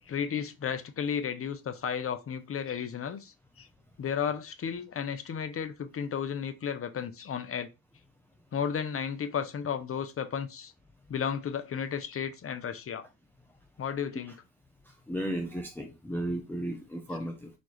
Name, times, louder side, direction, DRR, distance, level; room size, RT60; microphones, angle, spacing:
voice 1, 0.1-3.7 4.0-7.7 8.5-10.7 11.1-13.1 13.8-14.4, left 7 dB, 35° left, 0.8 m, -33 dB
voice 2, 15.1-17.5, right 1 dB, 5° left, 0.7 m, -34 dB
4.2 x 2.7 x 3.2 m
supercardioid pair, 85°, 40 cm